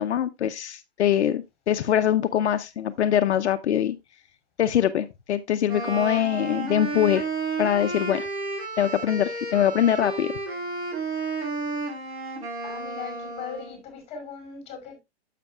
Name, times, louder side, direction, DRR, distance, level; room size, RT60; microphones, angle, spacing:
voice 1, 0.0-4.0 4.6-7.2 7.6-8.3 8.8-10.3, left 10 dB, 75° left, 0.7 m, -23 dB
Wind instrument woodwind instrument, 5.7-13.8, right 3 dB, 65° right, 4.2 m, -32 dB
voice 2, 12.6-15.0, left 6 dB, 20° left, 5.1 m, -39 dB
10.5 x 7.5 x 2.4 m
hypercardioid pair, 150°, 34 cm